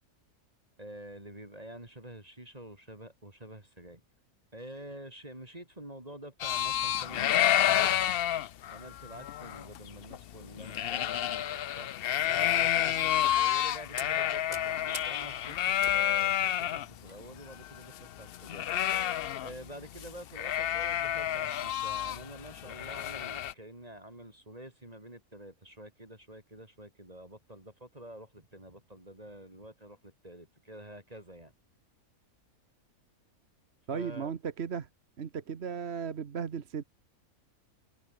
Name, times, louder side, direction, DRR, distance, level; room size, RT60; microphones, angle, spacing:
voice 1, 0.8-4.0 4.5-8.0 8.7-12.0 12.3-18.9 19.4-31.5 33.9-34.3, right 1 dB, 25° right, 3.9 m, -48 dB
sound 1, 6.4-16.9 17.2-17.3 17.5-19.7 19.9-20.1 20.3-23.5, left 11 dB, 65° left, 0.5 m, -29 dB
sound 2, 7.9-8.5 9.0-9.2 9.5-9.8 10.8-11.1 11.7-11.9 12.7-12.8 13.3-13.6 14.0-17.7 17.9-18.1 18.7-18.8, left 2 dB, 25° left, 3.4 m, -48 dB
voice 2, 33.9-34.9 35.2-36.8, right 6 dB, 45° right, 1.3 m, -36 dB
omnidirectional pair, 1.6 m